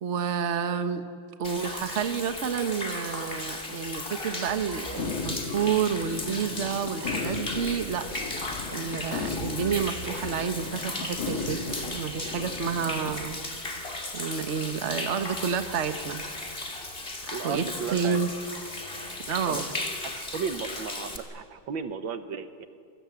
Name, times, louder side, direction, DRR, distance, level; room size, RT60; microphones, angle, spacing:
voice 1, 0.0-1.0 1.4-8.1 8.4-13.4 14.1-16.2 17.4-18.3 19.3-19.7, right 7 dB, 40° right, 8 dB, 1.4 m, -30 dB
Human voice / Rain / Stream, 1.4-21.2, left 2 dB, 30° left, 2.7 m, -36 dB
sound 1, 5.0-13.1, left 4 dB, 80° left, 3.2 m, -36 dB
voice 2, 17.3-18.2 19.5-22.7, right 6 dB, 75° right, 9 dB, 1.9 m, -35 dB
26.5 x 23.5 x 8.5 m, 2.3 s
omnidirectional pair, 2.1 m